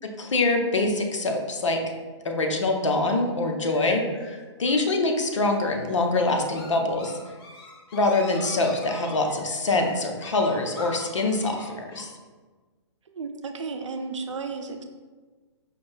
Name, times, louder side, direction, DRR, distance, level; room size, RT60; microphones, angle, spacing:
voice 1, 0.2-1.8 2.2-4.0 4.6-7.1 7.9-12.1, left 2 dB, 85° left, 3 dB, 0.7 m, -24 dB
sound 1, 3.7-12.0, left 2 dB, 50° left, 0.9 m, -44 dB
voice 2, 13.1-14.8, right 4 dB, 80° right, 6 dB, 0.6 m, -33 dB
5.0 x 2.6 x 3.3 m, 1.4 s
hypercardioid pair, 135°, 15 cm